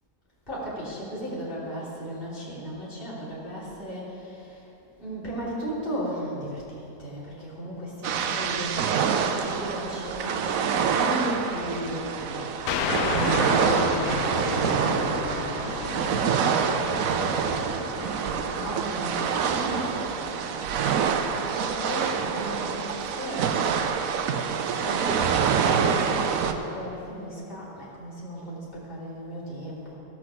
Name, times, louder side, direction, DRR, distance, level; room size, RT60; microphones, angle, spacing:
voice 1, 0.5-4.7 5.0-29.9, equal, 30° left, -8 dB, 3.3 m, -36 dB
sound 1, 8.0-26.5, right 7 dB, 65° right, 1.0 m, -26 dB
sound 2, 12.7-21.9, left 8 dB, 75° left, 1.0 m, -34 dB
16.0 x 6.1 x 6.2 m, 2.9 s
omnidirectional pair, 1.7 m